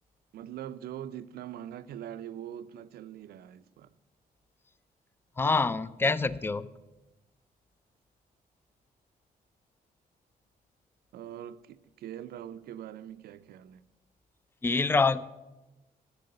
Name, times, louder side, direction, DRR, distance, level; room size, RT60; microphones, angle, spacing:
voice 1, 0.3-3.9 11.1-13.8, right 10 dB, 85° right, 0.5 m, -42 dB
voice 2, 5.4-6.7 14.6-15.2, left 4 dB, 15° left, 0.4 m, -26 dB
11.5 x 7.2 x 6.7 m
cardioid pair, 125°, 16 cm